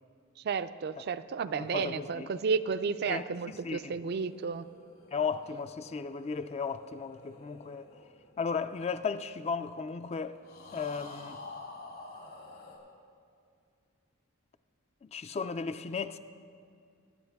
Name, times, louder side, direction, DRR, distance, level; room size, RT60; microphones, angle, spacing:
voice 1, 0.4-4.7, right 5 dB, 50° right, 0.3 m, -32 dB
voice 2, 1.5-2.3 3.1-4.0 5.1-7.9 8.4-10.4 10.7-11.4 15.0-16.2, left 5 dB, 30° left, 0.3 m, -35 dB
sound 1, 3.8-9.4 10.4-12.8, left 3 dB, 75° left, 3.1 m, -50 dB
21.5 x 9.0 x 3.5 m
head